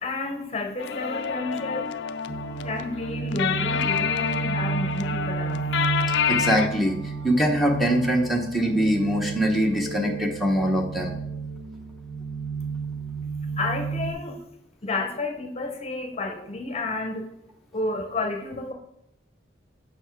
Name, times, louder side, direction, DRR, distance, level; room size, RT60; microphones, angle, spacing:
voice 1, 0.0-1.9 2.5-5.9 13.2-13.3 13.6-14.4 14.8-17.3 17.7-18.7, left 2 dB, 35° left, 4 dB, 0.8 m, -31 dB
sound 1, 0.8-6.7, left 7 dB, 65° left, 0.4 m, -28 dB
sound 2, 2.3-14.1, right 5 dB, 65° right, 0.9 m, -32 dB
voice 2, 6.3-11.2, equal, ahead, -2 dB, 0.9 m, -23 dB
7.0 x 5.6 x 4.5 m, 0.84 s
head